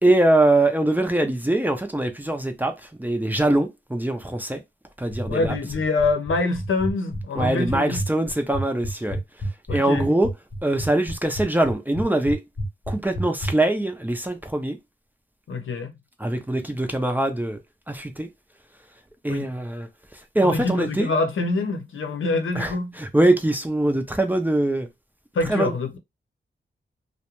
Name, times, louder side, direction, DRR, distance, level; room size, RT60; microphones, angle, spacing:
voice 1, 0.0-4.6 5.0-5.6 7.4-9.2 9.7-10.3 10.6-12.4 12.9-14.8 16.2-17.6 17.9-18.3 19.2-19.9 20.3-21.1 22.6-24.9 25.5-25.7, right 1 dB, 10° right, 0.5 m, -22 dB
sound 1, 5.1-13.5, right 1 dB, 40° left, 0.9 m, -29 dB
voice 2, 5.3-8.0 9.7-10.1 15.5-15.9 19.3-19.4 20.4-23.0 25.3-26.0, left 3 dB, 80° left, 0.7 m, -25 dB
2.4 x 2.1 x 2.9 m
wide cardioid pair, 90°, 20 cm